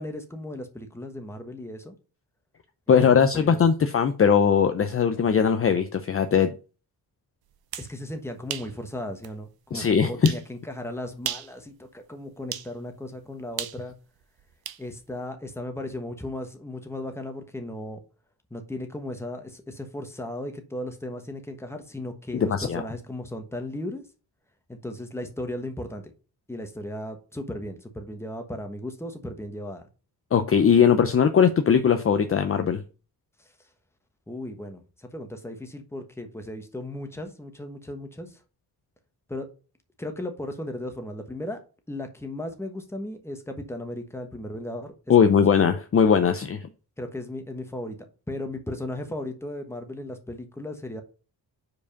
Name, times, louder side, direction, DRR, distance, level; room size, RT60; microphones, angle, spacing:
voice 1, 0.0-2.0 2.9-3.7 7.8-13.9 14.8-18.0 18.5-24.0 24.7-26.1 26.5-29.9 33.4-33.7 34.3-38.4 39.3-39.5 40.0-41.6 41.9-45.4 47.0-48.0 48.3-51.0, left 1 dB, 5° left, 5 dB, 1.2 m, -36 dB
voice 2, 2.9-6.5 9.7-10.3 22.3-22.8 30.3-32.8 45.1-46.7, left 7 dB, 35° left, 8 dB, 0.6 m, -20 dB
sound 1, 7.5-7.9 8.5-8.7 9.2-9.3 10.2-10.5 11.2-11.5 12.5-12.7 13.6-14.8, right 10 dB, 70° right, 0.7 m, -34 dB
5.0 x 4.8 x 5.2 m, 0.34 s
cardioid pair, 115°, 38 cm